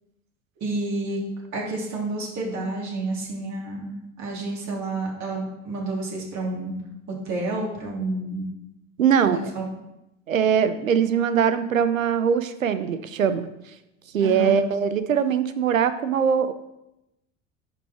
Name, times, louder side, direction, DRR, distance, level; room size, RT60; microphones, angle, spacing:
voice 1, 0.6-1.2 1.5-3.9 4.2-6.8 7.3-8.5 9.2-9.7 14.2-14.6, right 2 dB, 45° right, -3 dB, 3.5 m, -29 dB
voice 2, 9.0-9.4 10.3-13.5 14.1-16.5, right 7 dB, 85° right, 12 dB, 0.7 m, -21 dB
10.5 x 5.5 x 4.5 m, 0.91 s
figure-of-eight pair, 70°, 39 cm